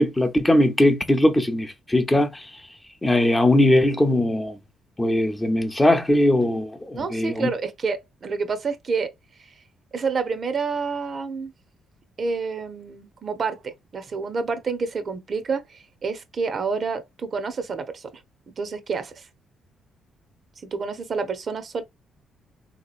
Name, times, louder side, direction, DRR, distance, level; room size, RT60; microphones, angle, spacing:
voice 1, 0.0-2.5 3.0-4.6 5.0-7.5, left 1 dB, 15° left, 0.6 m, -20 dB
voice 2, 6.9-9.1 9.4-9.6 9.9-11.5 12.2-18.2 18.5-19.3 20.6-21.8, right 5 dB, 45° right, 0.7 m, -29 dB
3.6 x 2.9 x 2.4 m
cardioid pair, 90°, 0 cm